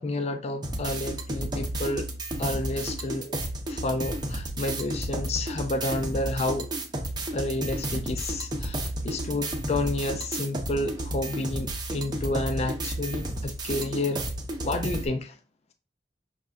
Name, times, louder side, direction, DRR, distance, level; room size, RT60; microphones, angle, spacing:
voice 1, 0.0-2.1 2.4-3.4 3.7-6.7 7.3-14.2 14.6-15.3, left 2 dB, 35° left, 0.4 m, -30 dB
sound 1, 0.6-15.1, right 1 dB, 25° right, 0.7 m, -32 dB
5.5 x 3.5 x 2.5 m
head